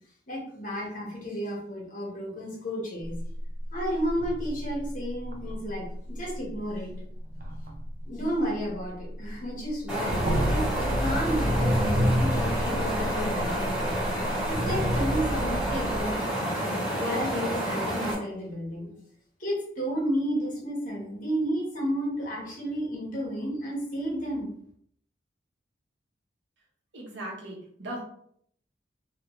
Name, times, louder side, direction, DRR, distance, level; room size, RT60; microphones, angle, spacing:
voice 1, 0.3-3.2 3.7-6.9 8.0-14.0 14.5-16.6 16.9-18.9 19.4-24.5, equal, 45° left, -3 dB, 1.3 m, -32 dB
sound 1, 3.0-9.4 9.7-16.2, equal, 45° right, 0.5 m, -29 dB
sound 2, 9.9-18.1, right 1 dB, 5° right, 1.2 m, -29 dB
voice 2, 26.9-28.0, right 1 dB, 80° right, -3 dB, 1.1 m, -38 dB
3.1 x 2.7 x 3.1 m, 0.67 s
head